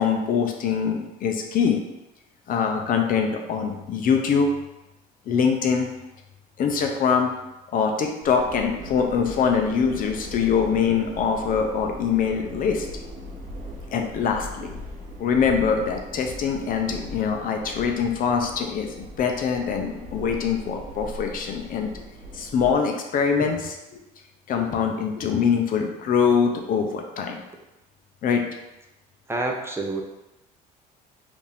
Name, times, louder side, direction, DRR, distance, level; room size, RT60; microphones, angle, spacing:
voice 1, 0.0-1.8 2.5-4.5 5.3-5.9 6.6-7.3 7.7-12.9 13.9-14.7 15.2-22.0 22.3-24.0 24.5-27.4 28.2-28.4, left 6 dB, 55° left, 3 dB, 0.6 m, -23 dB
sound 1, 8.2-22.7, equal, 45° right, 1.0 m, -39 dB
voice 2, 29.3-30.0, right 2 dB, 15° right, 1 dB, 0.6 m, -27 dB
4.9 x 2.6 x 3.5 m, 0.95 s
cardioid pair, 110°, 17 cm